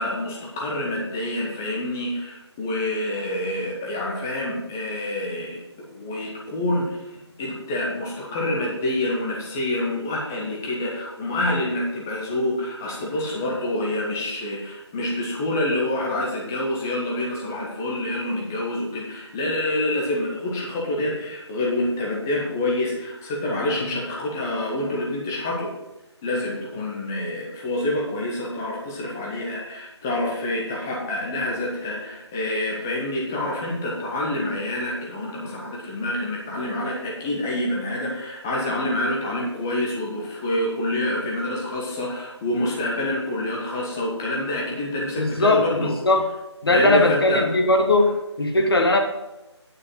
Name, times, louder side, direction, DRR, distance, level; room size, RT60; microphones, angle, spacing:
voice 1, 0.0-7.0 7.4-25.7 26.2-45.9 46.7-47.4, left 1 dB, 5° left, -3 dB, 0.5 m, -27 dB
voice 2, 45.2-46.3 46.6-49.0, left 2 dB, 55° left, 4 dB, 1.4 m, -19 dB
8.8 x 4.8 x 5.4 m, 0.98 s
figure-of-eight pair, 160°, 15 cm